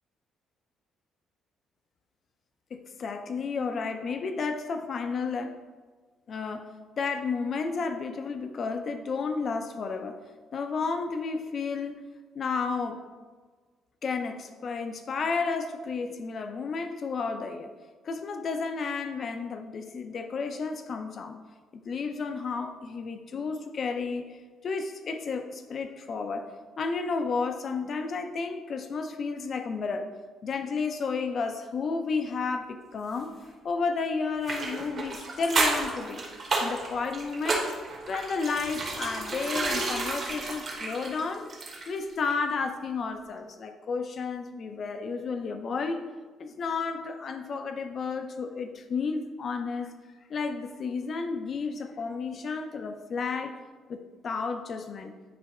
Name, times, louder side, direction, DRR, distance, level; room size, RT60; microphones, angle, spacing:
voice 1, 2.7-5.6 6.3-6.6 7.0-10.2 10.5-12.0 12.3-13.0 14.0-17.7 18.0-21.4 21.8-24.4 24.6-26.5 26.8-30.1 30.4-33.3 33.6-36.2 36.6-37.7 38.1-41.5 41.9-46.0 46.4-49.9 50.3-53.6 53.9-55.1, left 4 dB, 35° left, 7 dB, 0.5 m, -32 dB
sound 1, 34.4-42.0 42.3-42.4, right 3 dB, 35° right, 1.3 m, -31 dB
9.3 x 3.4 x 4.2 m, 1.4 s
cardioid pair, 165°, 0 cm